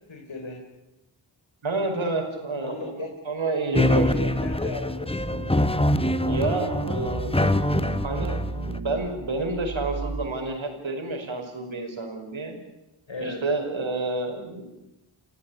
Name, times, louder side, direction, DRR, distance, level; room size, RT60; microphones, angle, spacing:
voice 1, 0.1-0.6 2.6-3.1 3.7-5.1 13.1-13.4, left 3 dB, 75° left, 2 dB, 4.0 m, -36 dB
voice 2, 1.6-4.3 6.3-7.5 8.0-8.4 8.8-12.6 13.2-14.6, right 3 dB, 80° right, 4 dB, 5.5 m, -29 dB
sound 1, 3.7-8.8, left 1 dB, 10° left, 1.1 m, -24 dB
sound 2, 4.1-4.7 5.2-10.3, right 3 dB, 45° right, 1.8 m, -34 dB
30.0 x 16.5 x 8.7 m, 0.95 s
wide cardioid pair, 55°, 46 cm